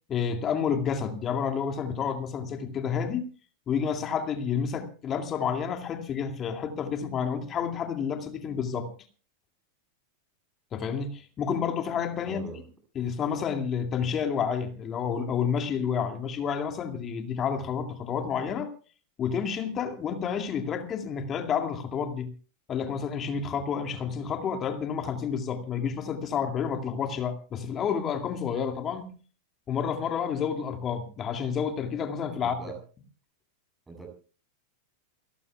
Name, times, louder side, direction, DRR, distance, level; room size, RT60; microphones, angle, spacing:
voice 1, 0.1-3.2 3.7-8.9 10.7-12.4 13.0-18.7 19.2-22.3 22.7-29.1 29.7-32.6, left 7 dB, 25° left, 6 dB, 2.3 m, -30 dB
voice 2, 12.3-12.6 32.4-32.8 33.9-34.1, right 5 dB, 10° right, 3 dB, 8.0 m, -41 dB
29.0 x 14.0 x 2.3 m, 0.38 s
figure-of-eight pair, 90°, 0 cm